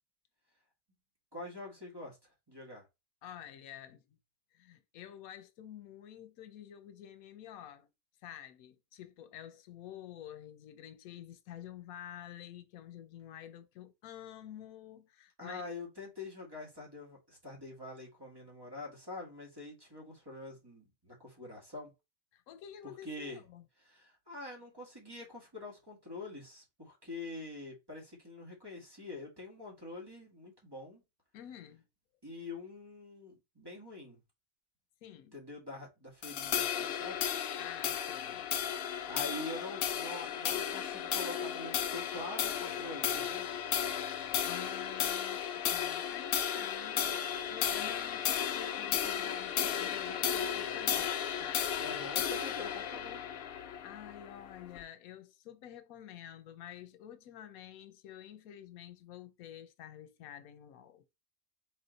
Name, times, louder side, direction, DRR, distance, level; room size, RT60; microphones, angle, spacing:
voice 1, 1.3-2.2 2.5-2.8 15.4-21.9 23.0-23.4 23.8-31.0 32.2-34.2 35.3-37.2 39.1-43.5 51.8-53.2, left 2 dB, 15° right, 1.7 m, -45 dB
voice 2, 3.2-4.0 4.5-7.9 8.2-15.7 22.3-23.6 31.3-31.8 35.0-35.4 37.6-38.5 44.4-52.1 53.8-61.0, left 10 dB, 85° left, 1.1 m, -49 dB
sound 1, 36.2-54.8, left 9 dB, 65° left, 0.6 m, -34 dB
4.3 x 3.1 x 3.9 m
omnidirectional pair, 1.5 m